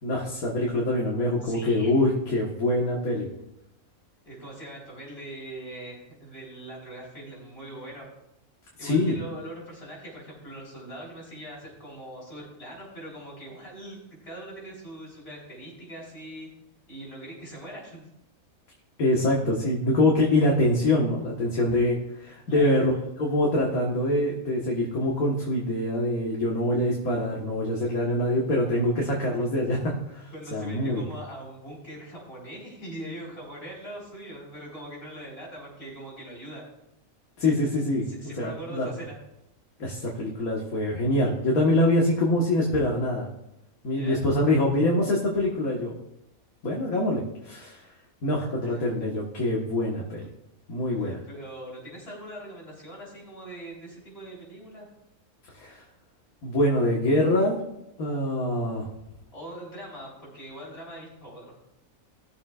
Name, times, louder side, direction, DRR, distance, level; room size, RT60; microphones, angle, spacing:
voice 1, 0.0-3.3 8.8-9.2 19.0-22.9 23.2-31.0 37.4-38.1 38.4-38.9 39.8-43.3 43.8-46.0 46.6-47.9 48.2-50.2 50.7-51.2 55.5-55.8 56.4-57.6 58.0-58.9, left 1 dB, 85° left, -3 dB, 1.9 m, -24 dB
voice 2, 1.4-1.9 4.2-8.1 8.8-16.5 16.9-18.0 22.5-22.7 30.3-36.6 38.0-39.2 43.9-44.2 48.3-48.9 51.0-54.9 59.3-61.6, right 1 dB, 45° left, -4 dB, 4.8 m, -42 dB
19.5 x 7.2 x 2.5 m, 0.86 s
omnidirectional pair, 1.5 m